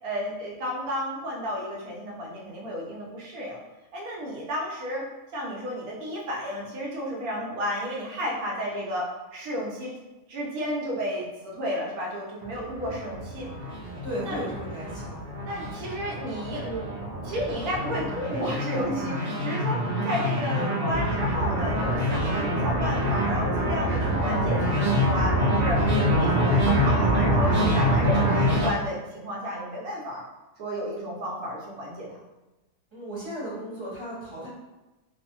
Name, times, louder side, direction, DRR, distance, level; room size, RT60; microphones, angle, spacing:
voice 1, 0.0-3.6 3.9-5.0 5.3-9.9 10.3-13.5 14.2-14.4 15.4-30.2 30.6-32.2, equal, 90° right, -3 dB, 1.2 m, -32 dB
sound 1, 12.4-28.7, equal, 55° right, 0.7 m, -25 dB
voice 2, 14.0-15.2 32.9-34.5, equal, 25° right, -8 dB, 0.8 m, -35 dB
3.0 x 2.0 x 2.9 m, 1.1 s
omnidirectional pair, 1.5 m